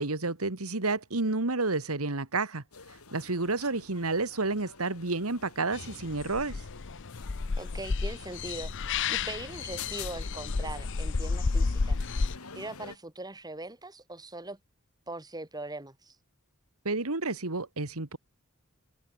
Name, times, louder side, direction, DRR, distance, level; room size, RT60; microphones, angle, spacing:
voice 1, 0.0-2.6 3.1-6.6 16.8-18.2, right 3 dB, 85° right, 2.2 m, -30 dB
sound 1, 2.7-13.0, left 5 dB, 90° left, 3.2 m, -48 dB
sound 2, 5.7-12.4, left 4 dB, 60° left, 0.7 m, -31 dB
voice 2, 7.6-12.0 12.5-14.6 15.1-16.2, right 2 dB, 20° right, 4.0 m, -41 dB
head